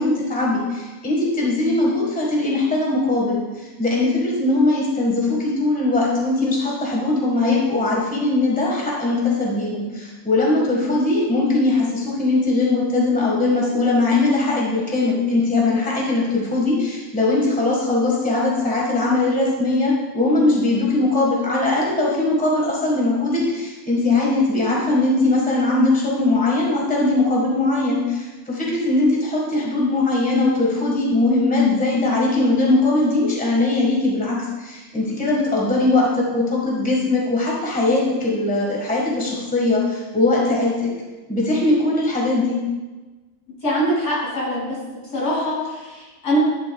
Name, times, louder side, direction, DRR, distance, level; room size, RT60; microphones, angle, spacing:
voice 1, 0.0-40.9 41.3-42.6, left 2 dB, 5° left, -3 dB, 1.4 m, -20 dB
voice 2, 43.6-44.8 45.1-46.4, equal, 80° left, -6 dB, 3.3 m, -23 dB
10.5 x 6.7 x 2.3 m, 1.2 s
omnidirectional pair, 1.5 m